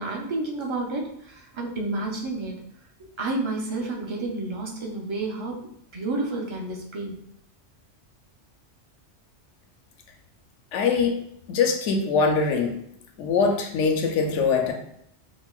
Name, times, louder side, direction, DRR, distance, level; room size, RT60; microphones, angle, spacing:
voice 1, 0.0-2.6 3.0-7.2, right 2 dB, 45° right, -1 dB, 0.4 m, -30 dB
voice 2, 10.7-11.2 11.5-12.8 13.2-14.7, left 5 dB, 90° left, 3 dB, 0.9 m, -22 dB
4.8 x 2.1 x 2.3 m, 0.72 s
omnidirectional pair, 1.2 m